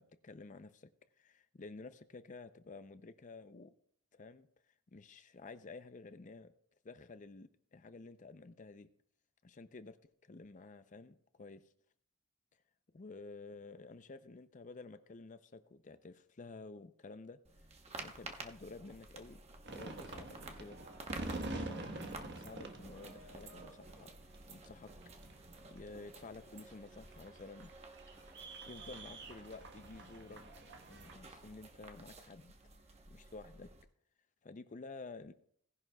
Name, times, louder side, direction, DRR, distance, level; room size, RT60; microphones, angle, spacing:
voice 1, 0.0-3.7 4.1-4.5 4.9-6.5 6.8-8.9 9.4-10.0 10.2-11.6 12.9-17.4 18.0-19.4 19.7-20.8 21.2-24.9 25.6-27.7 28.7-30.4 30.9-32.5 33.1-33.7 34.4-35.3, left 3 dB, 35° left, 12 dB, 0.5 m, -52 dB
sound 1, 17.4-33.8, right 2 dB, 30° right, 1.0 m, -53 dB
sound 2, 19.6-31.2, right 2 dB, 55° right, 1.2 m, -47 dB
17.5 x 11.0 x 2.3 m, 0.66 s
head